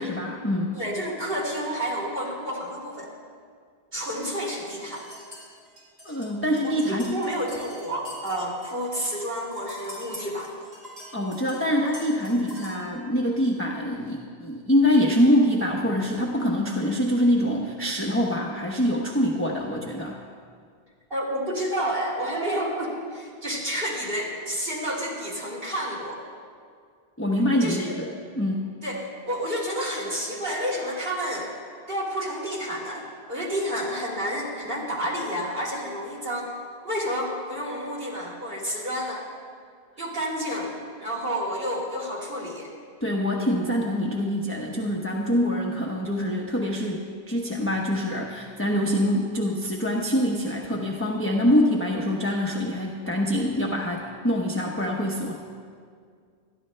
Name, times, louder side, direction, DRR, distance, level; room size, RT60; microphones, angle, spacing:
voice 1, 0.0-0.7 6.0-7.3 11.1-20.2 27.2-28.1 28.4-28.7 43.0-55.3, equal, 15° left, -2 dB, 0.9 m, -25 dB
voice 2, 0.7-3.1 3.9-5.0 6.6-10.5 21.1-26.2 27.6-27.9 28.8-31.5 31.9-36.5 36.8-39.3 40.0-42.7, equal, 60° right, -3 dB, 2.9 m, -30 dB
sound 1, 4.1-12.9, equal, 40° right, 4.7 m, -44 dB
26.5 x 13.5 x 2.2 m, 2.1 s
omnidirectional pair, 1.1 m